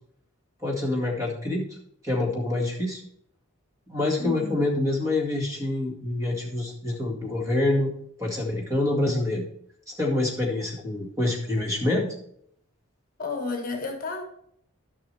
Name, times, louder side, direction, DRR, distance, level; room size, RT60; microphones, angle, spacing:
voice 1, 0.6-1.7 2.0-3.0 3.9-7.9 8.2-9.4 10.0-12.1, left 2 dB, 15° right, -2 dB, 2.0 m, -26 dB
voice 2, 4.2-4.6 13.2-14.2, left 4 dB, 40° left, 3 dB, 1.3 m, -31 dB
13.0 x 6.1 x 3.4 m, 0.69 s
head